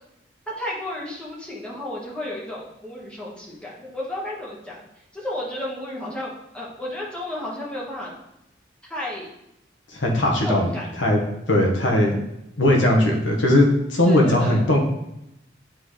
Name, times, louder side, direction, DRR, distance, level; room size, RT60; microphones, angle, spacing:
voice 1, 0.5-4.8 5.1-8.1 8.9-9.3 10.4-10.9 14.0-14.6, left 1 dB, 5° left, -5 dB, 1.4 m, -32 dB
voice 2, 9.9-10.7 11.0-11.2 11.5-12.2 12.6-14.8, left 1 dB, 75° left, 0 dB, 1.2 m, -19 dB
8.9 x 3.8 x 3.2 m, 0.85 s
head